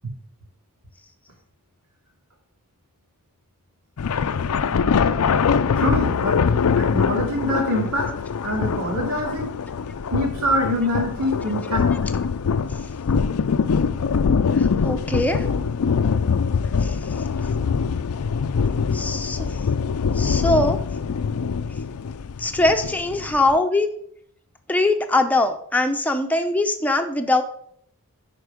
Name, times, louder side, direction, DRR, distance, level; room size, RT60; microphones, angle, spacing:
sound 1, 4.0-23.6, left 6 dB, 90° left, 0.5 m, -23 dB
voice 1, 5.7-6.4 6.8-8.1 8.4-9.5 10.1-11.9, equal, 85° right, 0 dB, 2.5 m, -24 dB
voice 2, 14.6-15.5 16.8-17.0 18.9-19.5 20.2-20.8 22.4-23.9 24.7-27.4, left 2 dB, 5° left, 5 dB, 0.6 m, -21 dB
11.0 x 4.5 x 5.0 m, 0.67 s
head